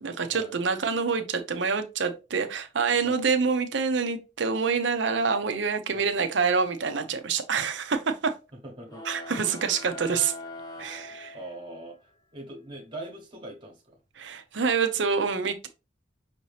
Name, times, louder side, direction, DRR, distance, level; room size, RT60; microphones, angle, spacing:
voice 1, 0.0-8.3 9.0-10.3 10.8-11.4 14.2-15.7, right 5 dB, 65° right, 0.7 m, -26 dB
voice 2, 8.6-9.0 10.7-10.9 11.3-14.0, right 1 dB, 25° right, 1.1 m, -42 dB
sound 1, 8.9-11.9, left 2 dB, 20° left, 0.8 m, -42 dB
5.8 x 2.8 x 3.2 m
head